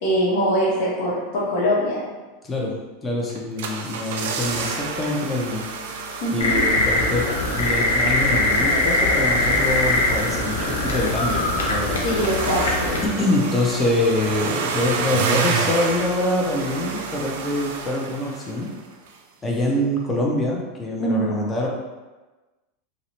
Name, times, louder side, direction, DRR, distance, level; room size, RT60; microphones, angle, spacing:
voice 1, 0.0-2.0 6.2-6.6 12.0-12.9 21.0-21.3, equal, 65° left, -6 dB, 0.9 m, -22 dB
voice 2, 3.0-5.6 6.3-7.3 7.5-12.0 13.0-18.7 19.4-21.7, left 1 dB, 20° left, -2 dB, 0.5 m, -25 dB
sound 1, 3.3-18.8 19.1-19.2, right 4 dB, 75° right, 0.3 m, -29 dB
sound 2, 6.4-13.1, left 2 dB, 90° left, 0.5 m, -22 dB
2.5 x 2.0 x 2.9 m, 1.2 s
supercardioid pair, 120°, 0 cm